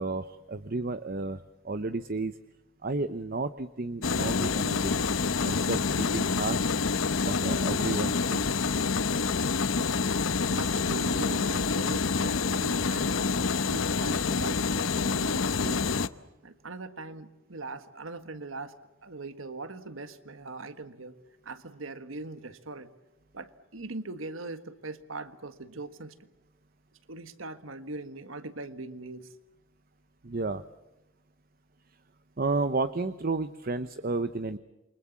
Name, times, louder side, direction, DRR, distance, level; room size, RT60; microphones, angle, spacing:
voice 1, 0.0-2.4 2.8-5.0 5.4-6.6 7.2-8.4 30.2-30.6 32.4-34.6, right 3 dB, 45° right, 12 dB, 0.8 m, -32 dB
sound 1, 4.0-16.1, left 4 dB, 75° left, 0.9 m, -27 dB
voice 2, 10.5-15.9 16.4-18.7 19.0-21.2 21.4-22.9 23.3-26.2 27.1-29.3, right 3 dB, 80° right, 11 dB, 1.6 m, -41 dB
28.5 x 24.5 x 7.3 m, 1.0 s
head